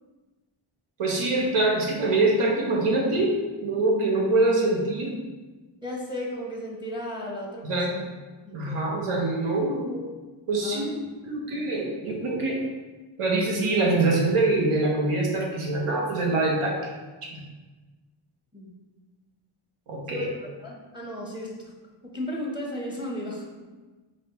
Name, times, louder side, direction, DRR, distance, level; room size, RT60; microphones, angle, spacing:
voice 1, 1.0-5.1 7.6-7.9 8.5-10.0 10.5-10.9 11.3-12.6 13.2-16.9 17.2-17.4 19.9-20.3, right 2 dB, 85° right, -1 dB, 0.8 m, -24 dB
voice 2, 5.8-8.0 8.4-8.9 10.6-10.9 18.5-18.7 20.1-21.7 22.0-23.5, left 1 dB, 10° right, -2 dB, 0.7 m, -35 dB
4.9 x 2.1 x 2.8 m, 1.3 s
cardioid pair, 50°, 50 cm